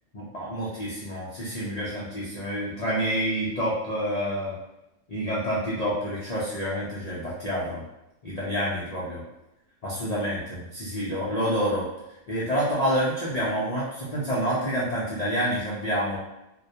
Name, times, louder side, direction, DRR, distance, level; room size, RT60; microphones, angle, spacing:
voice 1, 0.1-4.6 5.1-7.8 8.2-9.2 9.8-11.9 12.3-16.2, equal, 75° left, -8 dB, 0.3 m, -28 dB
2.2 x 2.1 x 2.7 m, 0.91 s
omnidirectional pair, 1.3 m